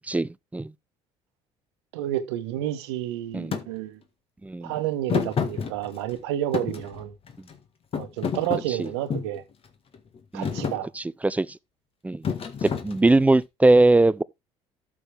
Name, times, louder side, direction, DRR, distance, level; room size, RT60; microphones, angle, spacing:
voice 1, 0.1-0.7 3.3-3.5 4.4-4.7 8.7-8.9 10.3-10.6 10.9-11.6 12.0-12.2 12.6-14.2, right 2 dB, 10° right, 0.5 m, -21 dB
voice 2, 1.9-4.0 4.6-7.1 8.0-9.4 10.3-10.9, right 13 dB, 85° right, 1.3 m, -30 dB
Thump thud, 3.5-3.7 5.1-6.2 6.5-7.5 7.9-9.4 9.9-10.2 10.4-10.8 12.2-13.3, left 6 dB, 45° left, 1.7 m, -29 dB
12.0 x 6.2 x 3.4 m
hypercardioid pair, 70°, 13 cm